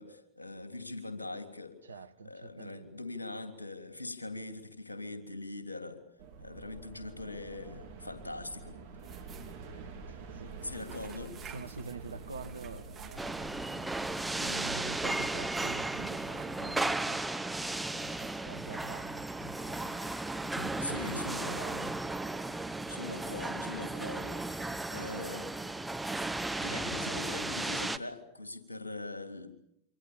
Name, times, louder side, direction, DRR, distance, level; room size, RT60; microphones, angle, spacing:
voice 1, 0.0-1.8 2.2-6.0 6.4-8.8 10.6-11.3 20.8-21.6 22.9-25.5 26.5-29.5, left 2 dB, 80° left, 3.2 m, -42 dB
voice 2, 1.8-3.0 10.1-10.9 11.4-13.5 14.2-17.3 17.6-22.0, right 3 dB, 75° right, 1.2 m, -46 dB
sound 1, 6.2-17.0, right 4 dB, 55° right, 4.1 m, -48 dB
sound 2, 8.8-25.0, right 7 dB, 25° right, 3.1 m, -56 dB
sound 3, 13.2-28.0, right 2 dB, 5° right, 1.1 m, -35 dB
28.0 x 25.5 x 7.0 m
figure-of-eight pair, 90°, 0 cm